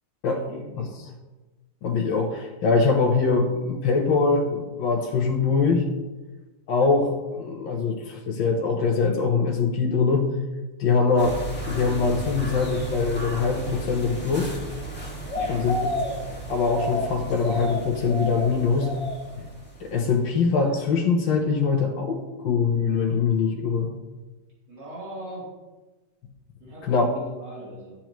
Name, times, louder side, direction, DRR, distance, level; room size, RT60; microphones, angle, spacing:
voice 1, 0.3-0.9 15.3-15.7 24.7-25.5 26.6-27.9, right 1 dB, 65° right, -6 dB, 3.4 m, -40 dB
voice 2, 1.8-5.8 6.7-10.3 10.8-11.4 11.7-14.5 15.5-15.9 16.5-18.9 19.8-23.9 26.8-27.1, left 4 dB, 85° left, 2 dB, 1.6 m, -23 dB
sound 1, 11.2-20.4 20.7-20.8, right 1 dB, 5° left, 1.8 m, -32 dB
11.0 x 8.7 x 3.0 m, 1.2 s
omnidirectional pair, 2.0 m